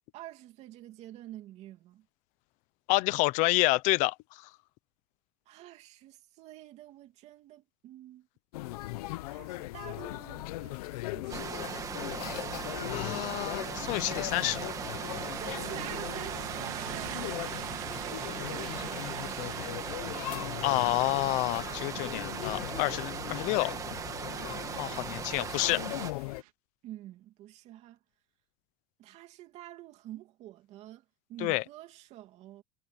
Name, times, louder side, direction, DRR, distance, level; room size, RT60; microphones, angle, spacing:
voice 1, 0.1-2.1 5.5-8.3 8.8-8.9 9.3-11.7 15.3-19.4 24.2-24.6 26.8-28.0 29.0-32.6, right 14 dB, 35° right, 2.7 m, -48 dB
voice 2, 2.9-4.4 12.9-14.7 20.6-23.7 24.8-25.8 31.4-31.6, left 21 dB, 40° left, 0.8 m, -29 dB
sound 1, 8.5-26.4, left 18 dB, 85° left, 0.8 m, -39 dB
sound 2, 11.3-26.1, right 7 dB, 15° right, 1.5 m, -38 dB
sound 3, 13.1-26.5, right 20 dB, 75° right, 3.6 m, -46 dB
supercardioid pair, 170°, 19 cm